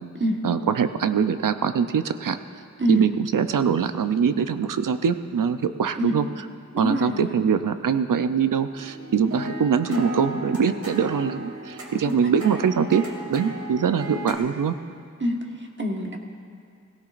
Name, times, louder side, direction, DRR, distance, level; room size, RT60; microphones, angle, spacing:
voice 1, 0.4-2.4 2.9-6.3 6.8-13.0 13.3-14.7, right 7 dB, 85° right, 10 dB, 0.6 m, -23 dB
voice 2, 6.7-7.3 9.9-10.1 12.0-12.3 15.2-16.2, equal, 35° right, 1 dB, 1.4 m, -26 dB
sound 1, 8.7-14.4, equal, 65° right, 2.0 m, -35 dB
17.0 x 17.0 x 2.5 m, 2.3 s
wide cardioid pair, 65°, 31 cm